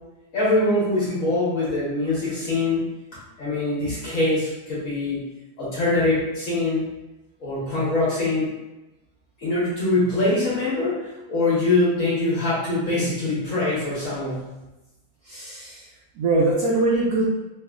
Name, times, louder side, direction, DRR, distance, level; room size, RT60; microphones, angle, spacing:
voice 1, 0.3-2.8 3.4-5.2 5.6-6.8 7.4-8.5 9.4-11.0 11.3-14.4, left 2 dB, 55° left, -8 dB, 1.0 m, -23 dB
voice 2, 15.3-15.8 16.2-17.3, right 2 dB, 80° right, -3 dB, 0.8 m, -22 dB
3.2 x 2.6 x 2.4 m, 1.0 s
omnidirectional pair, 2.1 m